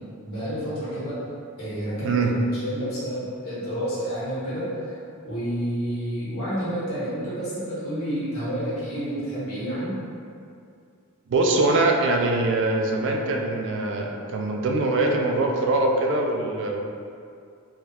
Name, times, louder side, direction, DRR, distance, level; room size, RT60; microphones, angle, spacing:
voice 1, 0.2-1.2 1.6-2.2 2.5-10.0, equal, 65° left, -11 dB, 1.4 m, -29 dB
voice 2, 2.0-2.4 11.3-16.8, right 2 dB, 55° right, 1 dB, 0.3 m, -23 dB
3.3 x 2.3 x 2.7 m, 2.4 s
head